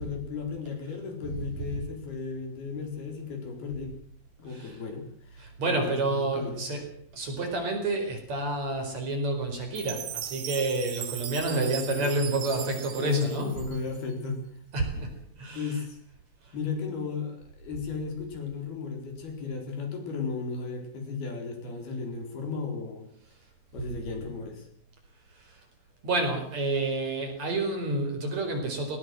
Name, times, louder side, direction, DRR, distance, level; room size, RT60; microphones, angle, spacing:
voice 1, 0.0-3.9 4.4-5.1 5.3-6.6 11.5-12.0 13.0-14.4 14.9-15.1 15.3-16.0 16.5-23.1 23.7-24.7, left 5 dB, 75° left, 4 dB, 6.1 m, -34 dB
voice 2, 4.5-4.8 5.4-6.9 7.1-13.5 14.7-15.8 16.4-16.5 25.3-25.6 26.0-29.0, right 2 dB, 45° right, 4 dB, 5.6 m, -29 dB
Chime, 9.8-14.1, right 10 dB, 60° right, 2.8 m, -38 dB
19.0 x 19.0 x 7.7 m, 0.62 s
omnidirectional pair, 4.5 m